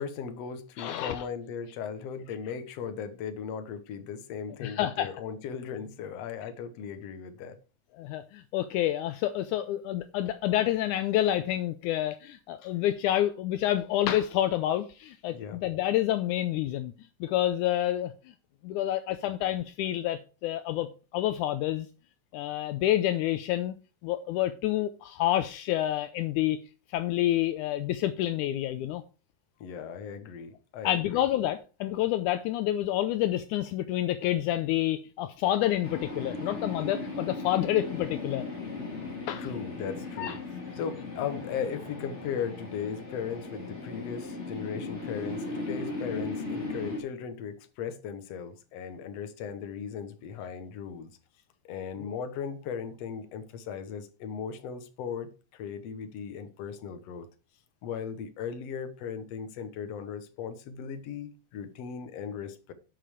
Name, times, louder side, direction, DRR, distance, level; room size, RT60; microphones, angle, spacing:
voice 1, 0.0-7.6 15.3-15.6 29.6-31.3 39.4-40.4 40.7-51.1 51.6-57.3 57.8-62.7, left 7 dB, 60° left, 1.8 m, -37 dB
voice 2, 0.8-1.2 4.6-5.1 8.0-16.9 17.2-18.1 18.6-20.9 21.1-21.9 22.3-23.8 24.0-26.6 26.9-29.0 30.8-38.4 39.3-39.5 40.2-40.4, left 13 dB, 85° left, 1.7 m, -28 dB
sound 1, 35.8-47.0, left 3 dB, 20° left, 2.4 m, -37 dB
11.5 x 5.9 x 5.0 m
omnidirectional pair, 4.2 m